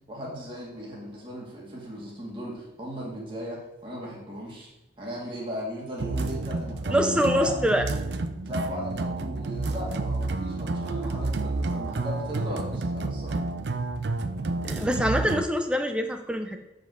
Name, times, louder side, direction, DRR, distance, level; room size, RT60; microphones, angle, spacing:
voice 1, 0.1-4.7 5.0-7.8 8.4-13.4, equal, 30° right, -5 dB, 2.0 m, -37 dB
sound 1, 6.0-15.4, right 3 dB, 70° right, 0.5 m, -30 dB
voice 2, 6.9-7.8 14.6-16.6, equal, 5° right, 5 dB, 0.6 m, -24 dB
8.0 x 5.3 x 6.3 m, 0.95 s
head